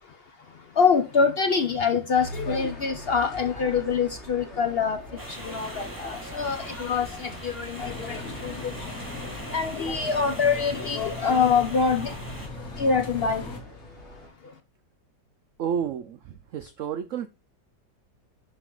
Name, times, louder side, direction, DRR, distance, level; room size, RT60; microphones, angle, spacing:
voice 1, 0.8-5.0 5.4-7.1 7.4-8.5 9.5-12.1 12.8-13.4, left 5 dB, 85° left, 0.5 m, -24 dB
sound 1, 2.2-14.3, left 1 dB, 35° left, 2.6 m, -44 dB
sound 2, 5.2-12.5, right 1 dB, 10° right, 2.2 m, -41 dB
sound 3, 7.8-13.6, left 2 dB, 50° left, 1.9 m, -38 dB
voice 2, 15.6-17.3, right 8 dB, 80° right, 0.7 m, -31 dB
11.0 x 4.0 x 3.8 m
omnidirectional pair, 2.0 m